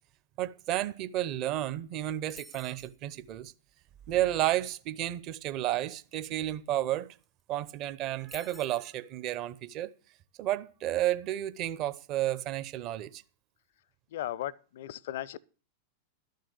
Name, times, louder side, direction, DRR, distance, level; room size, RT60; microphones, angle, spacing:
voice 1, 0.4-3.5 4.1-7.1 7.5-9.9 10.4-13.2, right 13 dB, 40° right, 0.8 m, -32 dB
sound 1, 2.3-3.0 6.9-7.0 7.2-7.6 8.3-8.9, equal, ahead, 0.5 m, -51 dB
voice 2, 14.1-15.4, left 13 dB, 55° left, 0.5 m, -36 dB
12.0 x 6.6 x 8.1 m
figure-of-eight pair, 90°, 0 cm